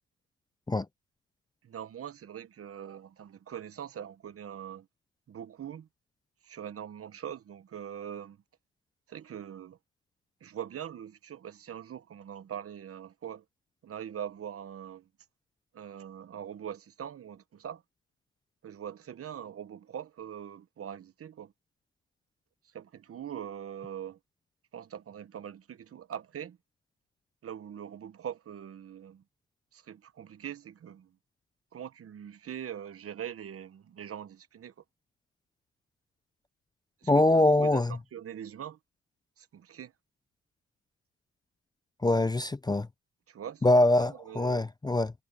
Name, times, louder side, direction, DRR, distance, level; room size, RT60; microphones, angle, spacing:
voice 1, 1.6-4.9 5.3-5.9 6.4-8.4 9.1-9.8 10.4-13.4 13.8-15.1 15.7-17.8 18.6-21.5 22.7-24.2 24.7-26.6 27.4-29.2 29.7-31.1 31.7-34.7 37.0-37.8 38.1-38.8 39.4-39.9 43.3-44.7, right 9 dB, 50° right, 1.1 m, -42 dB
voice 2, 37.1-38.0 42.0-42.9 43.6-45.1, left 2 dB, 15° left, 0.6 m, -23 dB
cardioid pair, 90°, 30 cm